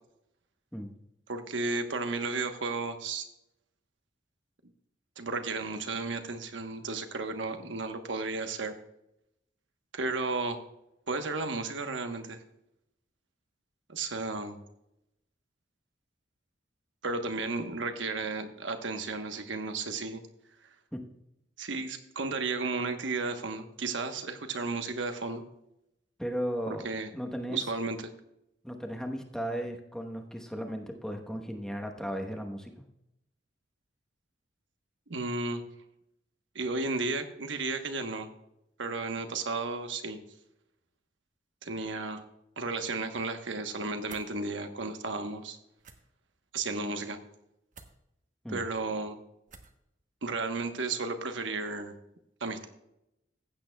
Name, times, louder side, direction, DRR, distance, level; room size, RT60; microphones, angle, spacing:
voice 1, 1.3-3.3 5.2-8.7 9.9-10.6 11.1-12.4 13.9-14.6 17.0-20.2 21.6-25.4 26.7-27.1 27.5-28.0 35.1-35.6 36.5-38.3 38.8-40.2 41.6-42.2 42.6-45.6 46.5-47.2 48.5-49.2 50.2-51.9 52.4-52.7, right 3 dB, 90° right, 7 dB, 1.1 m, -33 dB
voice 2, 26.2-27.6 28.6-32.8 48.4-48.6, equal, 5° left, 3 dB, 1.1 m, -36 dB
Zippo Lighter, 44.1-44.3 45.8-46.0 47.7-48.0 49.5-49.8, right 5 dB, 45° right, 1.0 m, -50 dB
15.5 x 8.7 x 2.3 m, 0.83 s
head